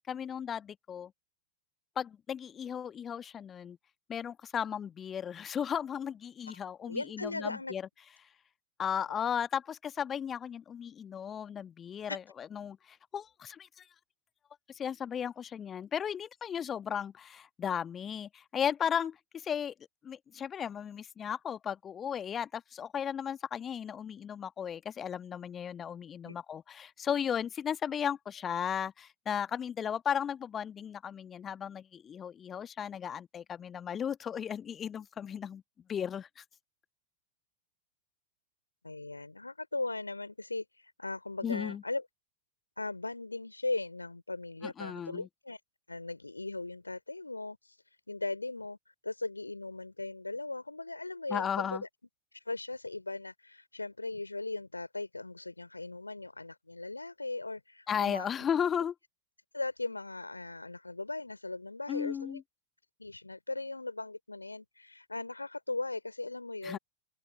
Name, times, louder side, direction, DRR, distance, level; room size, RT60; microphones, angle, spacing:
voice 1, 0.1-1.1 2.0-3.8 4.1-7.8 8.8-13.9 14.7-19.7 20.0-35.6 35.9-36.4 41.4-41.8 44.6-45.3 51.3-51.8 57.9-58.9 61.9-62.4 66.6-66.8, left 8 dB, 25° left, 1.3 m, -35 dB
voice 2, 6.9-7.7 12.1-12.2 26.2-26.3 38.8-42.0 42.8-45.6 45.9-47.8 48.1-51.8 52.3-58.3 59.5-62.4 63.0-66.8, left 2 dB, 80° left, 2.9 m, -38 dB
open air
figure-of-eight pair, 90°, 0 cm